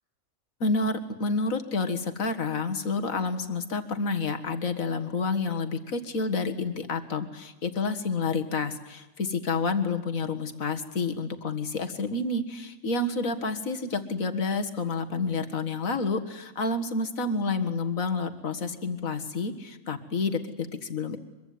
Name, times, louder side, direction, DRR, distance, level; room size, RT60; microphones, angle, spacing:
voice 1, 0.6-21.2, left 3 dB, 60° left, 7 dB, 2.2 m, -29 dB
24.5 x 23.0 x 9.6 m, 1.0 s
omnidirectional pair, 1.6 m